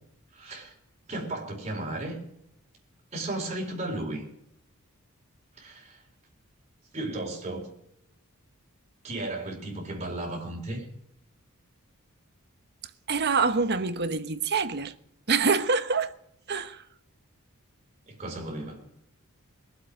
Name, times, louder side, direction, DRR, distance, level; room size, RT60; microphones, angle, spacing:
voice 1, 0.3-0.7 1.1-2.1 3.1-4.2 5.6-6.0 6.9-7.7 9.0-10.8 18.1-18.8, right 2 dB, 30° right, 4.3 m, -34 dB
voice 2, 13.1-14.9 15.3-16.1 16.5-16.8, right 4 dB, 50° right, 1.0 m, -25 dB
22.0 x 7.9 x 6.5 m
head